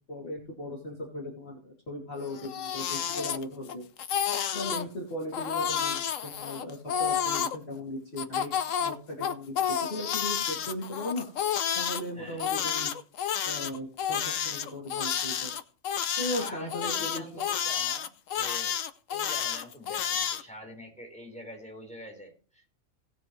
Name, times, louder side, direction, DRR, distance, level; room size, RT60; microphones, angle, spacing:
voice 1, 0.1-3.8 4.5-8.5 8.8-11.3 11.8-12.9 13.5-15.5 16.2-17.3, left 1 dB, 45° left, -4 dB, 2.9 m, -37 dB
Crying sobbing, 2.3-3.7 4.0-4.8 5.3-7.6 8.2-12.0 12.4-20.4, left 8 dB, 70° left, 1.2 m, -30 dB
voice 2, 12.2-12.5 16.3-18.8 19.1-22.7, equal, 5° left, -1 dB, 4.1 m, -45 dB
18.5 x 7.0 x 3.1 m, 0.39 s
omnidirectional pair, 1.4 m